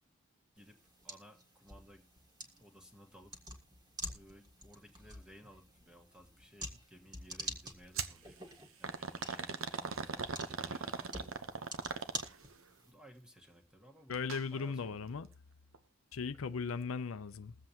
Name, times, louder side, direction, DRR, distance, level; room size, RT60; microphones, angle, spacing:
voice 1, 0.5-2.0 2.4-3.3 4.1-11.9 12.8-15.1, equal, 5° right, 1.4 m, -59 dB
sound 1, 0.6-12.9, equal, 20° right, 1.6 m, -48 dB
sound 2, 8.0-8.2 8.8-12.5 14.1-14.4 14.8-14.9 15.7-15.8, right 5 dB, 75° right, 0.9 m, -39 dB
voice 2, 14.1-15.3 16.1-17.7, left 5 dB, 85° left, 0.5 m, -38 dB
21.5 x 7.7 x 2.9 m
head